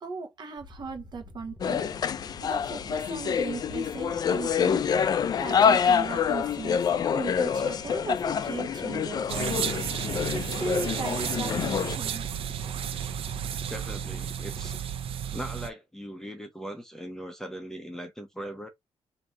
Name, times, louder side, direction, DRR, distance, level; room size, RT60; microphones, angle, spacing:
voice 1, 0.0-1.9 2.4-4.9 5.4-6.8 7.1-9.7 10.3-12.2, right 4 dB, 45° right, 1.1 m, -37 dB
sound 1, 0.6-14.8, left 3 dB, 20° left, 1.1 m, -48 dB
sound 2, 1.6-12.0, left 7 dB, 40° left, 0.3 m, -26 dB
sound 3, 9.3-15.7, right 9 dB, 60° right, 0.5 m, -33 dB
voice 2, 13.7-14.8 15.3-18.7, equal, 5° left, 0.7 m, -39 dB
3.8 x 2.7 x 3.4 m
cardioid pair, 160°, 11 cm